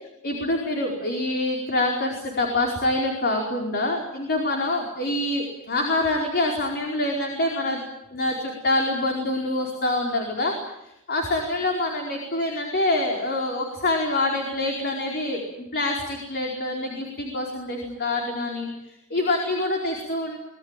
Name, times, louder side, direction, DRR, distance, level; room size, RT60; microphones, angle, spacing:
voice 1, 0.2-7.8 8.1-10.5 10.8-20.4, left 2 dB, 45° left, 2 dB, 4.8 m, -26 dB
26.0 x 20.0 x 9.2 m, 0.86 s
head